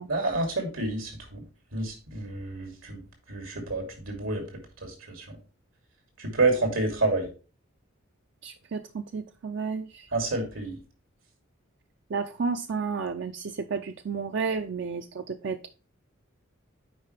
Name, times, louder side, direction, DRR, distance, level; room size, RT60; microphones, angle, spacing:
voice 1, 0.1-1.4 1.7-3.0 3.3-4.4 4.8-5.4 6.2-7.3 10.1-10.8, right 2 dB, 90° right, 2.7 m, -29 dB
voice 2, 8.4-10.1 12.1-15.7, right 5 dB, 60° right, 0.4 m, -32 dB
9.1 x 4.8 x 3.3 m
head